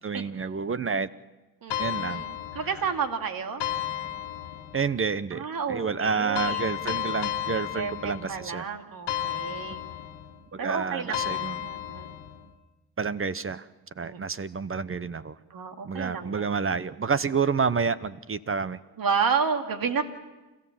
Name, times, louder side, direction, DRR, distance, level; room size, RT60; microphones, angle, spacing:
voice 1, 0.0-1.1 1.8-2.2 4.7-8.7 10.5-11.7 13.0-13.7 14.0-15.4 15.8-18.8, right 5 dB, 30° right, 15 dB, 0.9 m, -29 dB
voice 2, 1.6-3.6 5.3-6.6 7.7-9.9 10.6-12.2 14.0-14.2 15.5-16.5 19.0-20.0, right 6 dB, 60° right, 6 dB, 2.4 m, -31 dB
sound 1, 1.7-3.0 3.6-4.9 6.3-8.5 9.1-10.4 11.1-12.4, left 11 dB, 80° left, 1.9 m, -33 dB
30.0 x 14.5 x 7.3 m, 1.1 s
supercardioid pair, 55°, 40 cm